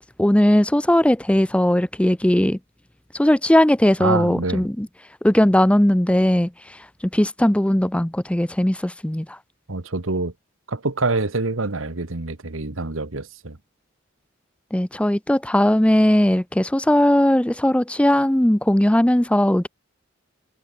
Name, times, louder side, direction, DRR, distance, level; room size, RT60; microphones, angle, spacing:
voice 1, 0.0-2.6 3.1-4.9 5.2-6.8 7.0-9.4 14.7-19.7, left 1 dB, 5° left, 0.6 m, -18 dB
voice 2, 4.0-4.7 9.7-10.3 10.7-13.6, right 3 dB, 80° right, 1.6 m, -26 dB
head